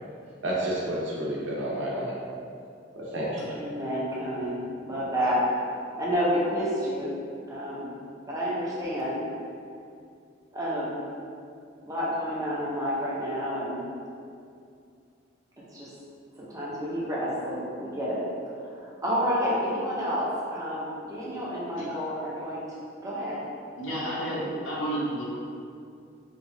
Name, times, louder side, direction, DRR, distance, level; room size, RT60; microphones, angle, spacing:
voice 1, 0.4-2.2 2.9-3.6, right 1 dB, 85° right, -5 dB, 0.7 m, -30 dB
voice 2, 3.5-4.6 4.9-5.7 6.0-7.1 7.5-8.0 8.3-9.2 10.5-11.0 11.9-13.8 15.7-15.9 16.4-18.2 18.6-22.6 23.0-23.4 23.9-24.5, equal, 20° right, -7 dB, 0.6 m, -29 dB
voice 3, 23.8-25.3, right 1 dB, 85° left, -4 dB, 0.7 m, -31 dB
3.0 x 2.3 x 2.6 m, 2.4 s
head